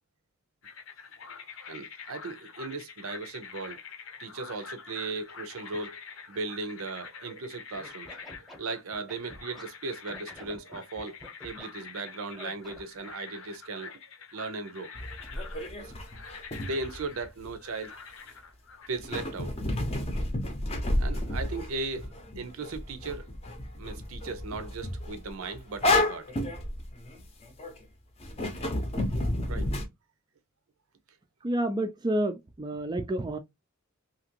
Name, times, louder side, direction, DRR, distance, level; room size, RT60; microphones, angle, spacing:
sound 1, 0.6-18.9, left 5 dB, 70° left, 0.7 m, -46 dB
voice 1, 1.7-3.8 4.2-6.0 6.3-8.2 8.6-14.0 14.3-14.9 15.8-15.9 16.6-17.9 18.9-20.1 21.0-23.3 23.8-26.3 29.5-29.7, right 3 dB, 80° right, 0.6 m, -37 dB
Scratching (performance technique), 7.7-9.6 10.1-11.7 12.3-13.0, left 1 dB, ahead, 0.8 m, -48 dB
sound 2, 14.9-17.5 19.0-27.8 28.2-29.9, left 1 dB, 30° left, 0.6 m, -31 dB
voice 2, 31.4-33.4, right 1 dB, 20° right, 0.3 m, -29 dB
2.8 x 2.5 x 2.8 m
head